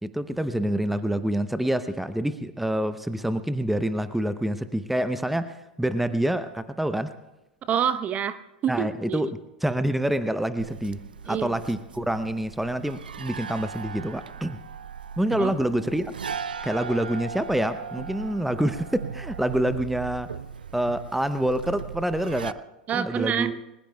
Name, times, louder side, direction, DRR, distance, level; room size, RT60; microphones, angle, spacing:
voice 1, 0.0-7.1 8.7-11.0 11.2-14.6 15.2-16.1 16.6-20.3 20.7-22.6 22.9-23.6, right 1 dB, 5° right, 12 dB, 0.8 m, -27 dB
voice 2, 7.7-9.2 11.3-11.5 15.4-15.5 22.9-23.5, right 8 dB, 30° right, 13 dB, 0.9 m, -27 dB
sound 1, 10.6-22.5, right 6 dB, 80° right, 0.5 m, -38 dB
29.5 x 21.0 x 2.3 m, 1.0 s
figure-of-eight pair, 90°, 5 cm